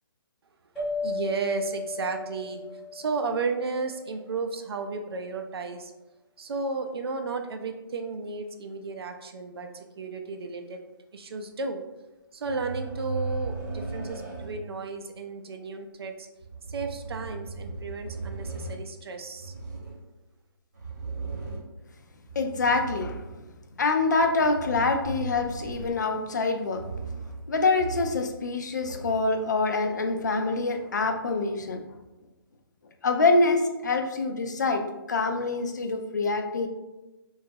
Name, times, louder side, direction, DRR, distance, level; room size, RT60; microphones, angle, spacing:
sound 1, 0.8-3.7, left 3 dB, ahead, 0.6 m, -34 dB
voice 1, 1.0-5.9 6.4-10.8 11.1-11.9 12.3-16.3 16.7-19.5, right 4 dB, 85° right, 6 dB, 0.4 m, -33 dB
sound 2, 12.4-14.7 16.4-18.8 19.3-20.0 20.7-21.8 22.2-23.5 24.1-26.2 26.7-27.4 27.8-28.3 28.6-29.3 30.2-30.3, right 3 dB, 40° right, 0.9 m, -37 dB
voice 2, 22.4-23.2 23.8-26.8 27.5-31.8 33.0-36.7, left 3 dB, 50° left, 5 dB, 0.3 m, -25 dB
2.9 x 2.3 x 2.6 m, 1.0 s
hypercardioid pair, 175°, 13 cm